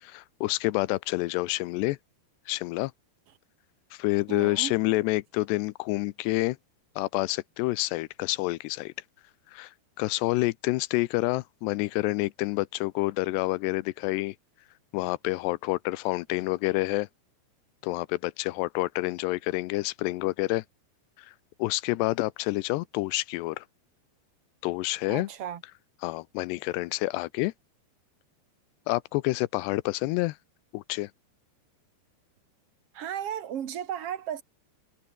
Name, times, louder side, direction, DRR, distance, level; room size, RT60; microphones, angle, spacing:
voice 1, 0.0-2.0 2.5-2.9 3.9-6.6 7.0-8.9 9.5-14.4 14.9-17.1 17.8-20.6 21.2-21.3 21.6-23.6 24.6-25.3 26.0-27.5 28.9-30.4 30.7-31.1, left 20 dB, 85° left, 2.8 m, -28 dB
voice 2, 4.3-4.7 25.1-25.6 32.9-34.4, right 9 dB, 55° right, 1.7 m, -34 dB
omnidirectional pair, 4.9 m